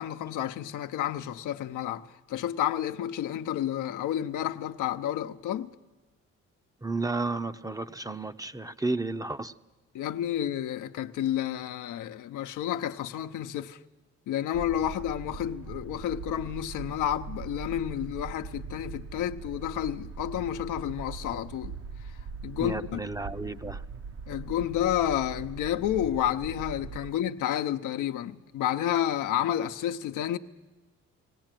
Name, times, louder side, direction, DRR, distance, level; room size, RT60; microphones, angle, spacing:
voice 1, 0.0-5.7 9.9-13.8 14.3-21.8 22.0-23.0 24.3-30.4, left 11 dB, 85° left, 0.9 m, -30 dB
voice 2, 6.8-9.5 22.6-23.8, right 3 dB, 10° right, 0.7 m, -32 dB
sound 1, 14.5-27.1, right 5 dB, 45° right, 0.9 m, -41 dB
19.0 x 18.0 x 9.1 m
cardioid pair, 90°, 30 cm